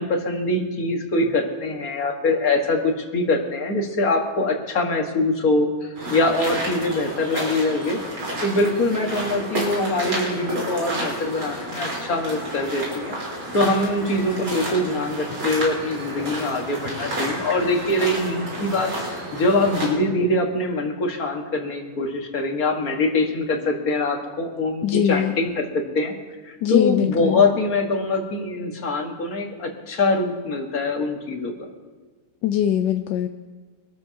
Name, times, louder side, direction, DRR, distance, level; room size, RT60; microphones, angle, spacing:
voice 1, 0.0-8.0 8.4-13.2 13.5-26.1 26.4-31.5, left 2 dB, 45° left, 2 dB, 2.0 m, -23 dB
sound 1, 5.9-19.9, right 1 dB, 70° right, 4.9 m, -30 dB
voice 2, 24.8-25.3 26.6-27.4 32.4-33.3, left 10 dB, 70° left, 6 dB, 1.1 m, -21 dB
24.5 x 13.0 x 2.9 m, 1.4 s
omnidirectional pair, 2.3 m